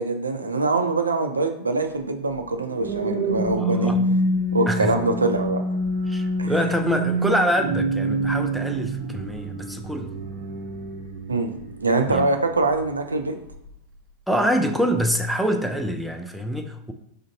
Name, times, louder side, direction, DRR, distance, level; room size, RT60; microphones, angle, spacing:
voice 1, 0.0-3.9 4.5-5.6 6.4-6.7 11.3-11.5 11.8-13.4, right 3 dB, 75° right, 6 dB, 0.3 m, -24 dB
sound 1, 2.3-12.9 13.5-13.7, right 1 dB, 40° right, 0.7 m, -27 dB
voice 2, 3.6-4.0 4.7-5.0 6.1-10.1 12.1-12.3 14.3-16.9, equal, ahead, 4 dB, 0.3 m, -25 dB
4.2 x 2.5 x 2.6 m, 0.74 s
figure-of-eight pair, 90°, 0 cm